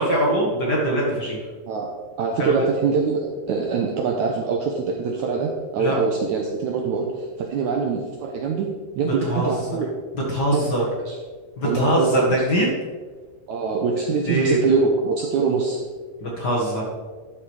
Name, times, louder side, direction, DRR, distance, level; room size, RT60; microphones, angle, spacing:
voice 1, 0.0-1.5 2.4-2.5 5.8-6.0 9.1-9.8 10.1-10.8 11.6-12.7 14.3-14.7 16.2-16.8, right 1 dB, 50° left, -4 dB, 1.2 m, -22 dB
voice 2, 1.7-8.7 8.9-9.9 10.5-11.2 11.6-12.4 13.5-15.9, right 5 dB, 85° right, 1 dB, 1.7 m, -24 dB
11.5 x 5.9 x 4.8 m, 1.5 s
omnidirectional pair, 4.4 m